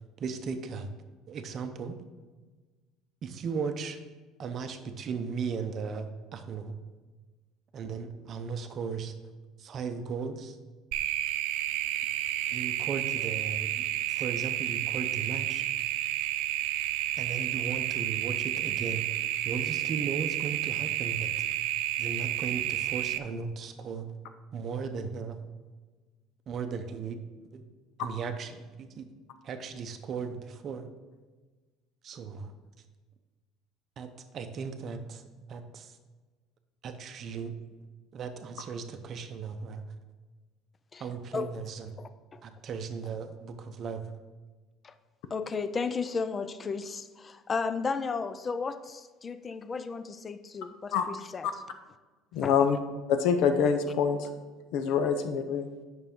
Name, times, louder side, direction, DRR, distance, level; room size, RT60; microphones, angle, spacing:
voice 1, 0.2-0.9 1.3-2.0 3.2-4.0 4.4-6.7 7.7-9.1 9.6-10.6 12.5-15.7 17.2-19.1 19.4-21.3 22.0-24.1 24.5-25.4 26.5-27.2 27.5-27.6 28.0-29.1 29.4-30.9 32.0-32.5 34.0-35.2 35.5-36.0 36.8-37.6 38.1-39.8 41.0-41.9 42.4-44.1, right 5 dB, 30° right, 8 dB, 0.6 m, -36 dB
sound 1, 10.9-23.2, right 14 dB, 85° right, 0.4 m, -31 dB
voice 2, 42.0-42.4 44.8-44.9 45.3-51.5 52.4-52.6, left 4 dB, 20° left, 11 dB, 0.3 m, -34 dB
voice 3, 52.3-52.8 53.1-54.3 54.7-55.7, left 6 dB, 60° left, 7 dB, 0.6 m, -25 dB
9.3 x 6.0 x 3.7 m, 1.3 s
cardioid pair, 175°, 0 cm